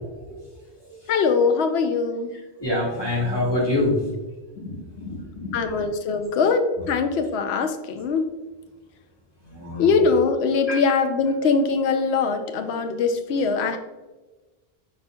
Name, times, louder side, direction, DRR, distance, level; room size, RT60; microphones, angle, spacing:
voice 1, 1.1-2.4 5.5-8.2 9.8-13.8, left 4 dB, 85° left, 7 dB, 0.8 m, -22 dB
voice 2, 2.6-4.0 4.6-5.6 9.5-9.9 10.7-10.8, left 2 dB, 25° left, -6 dB, 1.6 m, -25 dB
5.4 x 4.1 x 2.2 m, 1.2 s
omnidirectional pair, 1.1 m